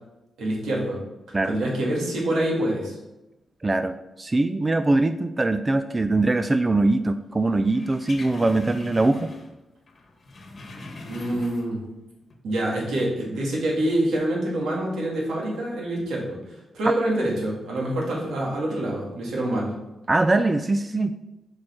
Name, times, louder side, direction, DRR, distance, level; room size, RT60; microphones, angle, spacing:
voice 1, 0.4-1.0 1.5-3.0 11.1-11.8 12.4-16.4 16.7-19.7, right 1 dB, 85° right, -3 dB, 2.1 m, -26 dB
voice 2, 3.6-9.3 20.1-21.1, right 2 dB, 25° right, 10 dB, 0.4 m, -22 dB
sound 1, 7.7-9.6 9.9-11.9 12.2-12.3, left 2 dB, 50° left, 1.3 m, -42 dB
6.3 x 4.8 x 4.4 m, 0.98 s
cardioid pair, 70°, 0 cm